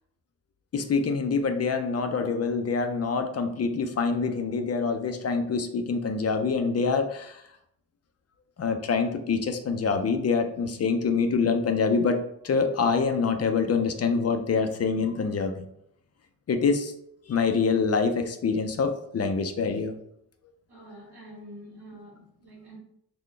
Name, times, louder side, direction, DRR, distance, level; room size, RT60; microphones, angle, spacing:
voice 1, 0.7-7.4 8.6-15.7 16.5-16.9 17.3-19.9, left 5 dB, 40° left, 0.4 m, -25 dB
voice 2, 20.7-22.8, equal, 75° right, 1.5 m, -46 dB
4.0 x 2.2 x 3.2 m
wide cardioid pair, 130°, 39 cm